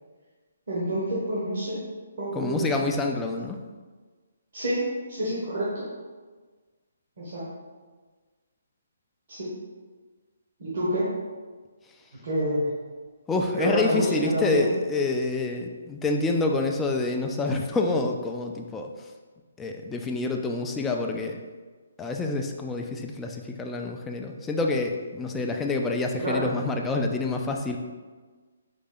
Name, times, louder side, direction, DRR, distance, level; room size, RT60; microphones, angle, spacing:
voice 1, 0.7-1.8 2.2-2.8 4.5-5.8 7.2-7.4 9.3-9.5 10.6-11.1 12.2-12.7 13.6-14.7 26.2-26.5, right 1 dB, 60° right, -8 dB, 1.2 m, -27 dB
voice 2, 2.3-3.6 13.3-18.9 19.6-21.4 22.0-27.8, left 3 dB, 10° left, 2 dB, 0.3 m, -27 dB
4.0 x 2.8 x 3.8 m, 1.4 s
figure-of-eight pair, 145°, 0 cm